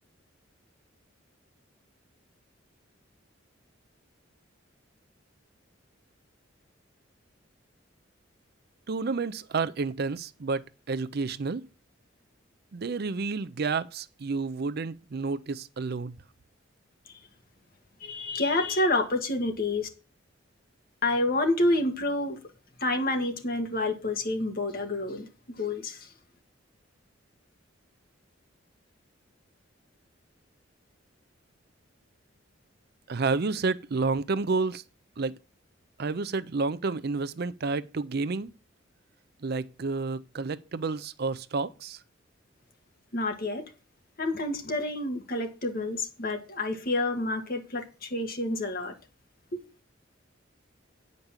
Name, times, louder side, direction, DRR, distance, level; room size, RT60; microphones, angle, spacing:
voice 1, 8.9-11.7 12.7-16.2 33.1-34.8 35.2-35.3 36.0-38.5 39.4-42.0, right 4 dB, 55° right, 0.5 m, -30 dB
voice 2, 18.0-19.9 21.0-22.4 22.8-25.3 25.6-26.1 43.1-43.6 44.2-49.0 49.5-49.6, left 2 dB, 50° left, 1.7 m, -28 dB
9.3 x 5.2 x 7.2 m
head